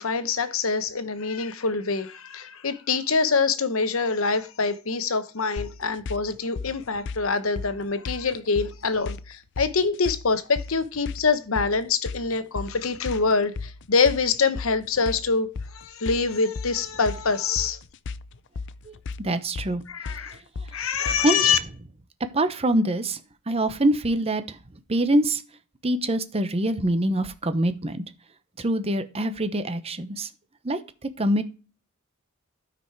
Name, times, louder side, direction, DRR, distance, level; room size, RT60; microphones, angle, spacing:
voice 1, 0.0-17.8 19.9-20.4 20.7-21.6, left 4 dB, 85° left, 0.9 m, -25 dB
sound 1, 5.6-21.4, left 4 dB, 60° left, 0.5 m, -36 dB
voice 2, 19.2-19.8 21.2-21.5 22.3-23.2 23.5-24.6 24.9-25.4 25.8-28.0 28.6-30.3 30.6-31.4, right 1 dB, 30° right, 0.8 m, -24 dB
12.5 x 5.1 x 4.6 m
head